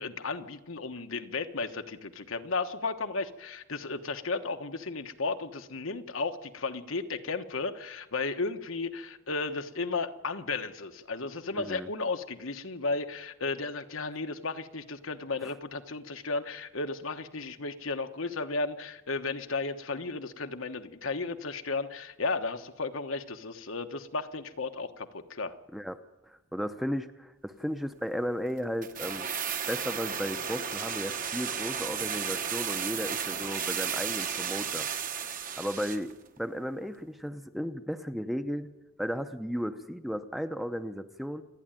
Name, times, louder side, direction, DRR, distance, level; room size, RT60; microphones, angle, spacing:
voice 1, 0.0-25.5, left 3 dB, 75° left, 7 dB, 1.2 m, -34 dB
voice 2, 11.5-11.9 15.4-15.5 25.7-26.0 26.3-29.3 29.7-34.9 35.6-36.1 36.4-38.7 39.0-41.4, equal, ahead, 8 dB, 0.7 m, -34 dB
sound 1, 28.8-36.1 36.4-36.5, right 7 dB, 40° right, 1.2 m, -33 dB
28.0 x 10.5 x 9.0 m, 1.1 s
head